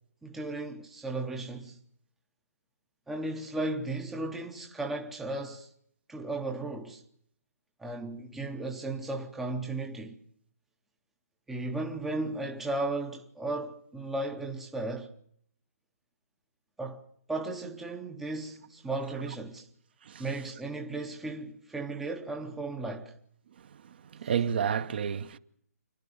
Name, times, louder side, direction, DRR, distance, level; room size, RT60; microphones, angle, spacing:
voice 1, 0.2-1.8 3.1-5.7 6.1-7.0 7.8-10.2 11.5-15.1 16.8-19.7 20.2-23.2, right 2 dB, 5° right, 0.8 m, -35 dB
voice 2, 24.2-25.4, right 7 dB, 40° right, 1.0 m, -29 dB
27.0 x 12.0 x 8.7 m
hypercardioid pair, 170°, 8 cm